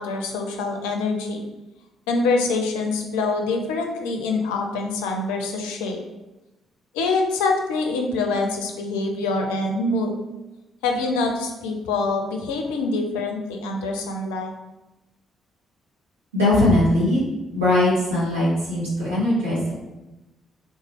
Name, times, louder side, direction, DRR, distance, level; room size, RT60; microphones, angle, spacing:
voice 1, 0.0-1.4 2.1-6.0 6.9-10.2 10.8-14.5, left 3 dB, 70° left, 3 dB, 0.4 m, -25 dB
voice 2, 16.3-17.2 17.5-19.7, left 1 dB, 80° right, -9 dB, 1.2 m, -20 dB
3.7 x 2.7 x 2.9 m, 1.0 s
figure-of-eight pair, 40°, 0 cm